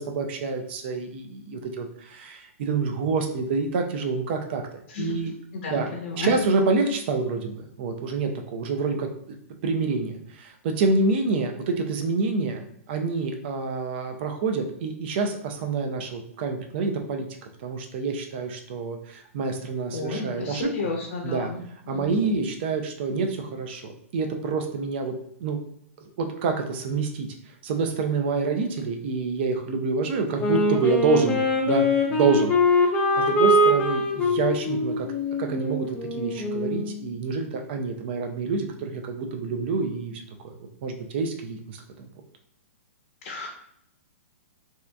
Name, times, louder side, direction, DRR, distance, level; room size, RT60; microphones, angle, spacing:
voice 1, 0.0-4.6 5.0-5.4 5.7-5.9 6.2-9.1 9.6-17.3 17.6-20.7 21.2-21.5 21.9-25.1 25.4-25.6 26.0-27.3 27.6-31.4 31.7-35.1 35.4-35.9 36.2-40.1 40.4-40.5 40.8-42.1, right 4 dB, 50° right, 4 dB, 0.5 m, -27 dB
voice 2, 5.5-6.3 19.9-21.6 21.9-22.2 43.2-43.5, left 3 dB, 55° left, -1 dB, 0.7 m, -32 dB
Wind instrument woodwind instrument, 30.4-37.0, left 2 dB, 20° left, 0.5 m, -23 dB
2.7 x 2.4 x 3.3 m, 0.70 s
hypercardioid pair, 145°, 8 cm